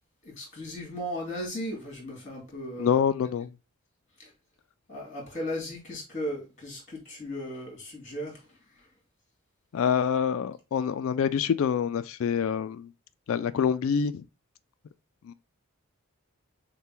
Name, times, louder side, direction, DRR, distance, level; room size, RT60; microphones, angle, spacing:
voice 1, 0.2-3.0 4.2-4.3 4.9-8.4, equal, 35° left, 2.5 m, -36 dB
voice 2, 2.8-3.5 9.7-12.9 13.3-14.3 15.2-15.3, left 7 dB, 70° left, 0.3 m, -26 dB
6.6 x 2.2 x 3.0 m
head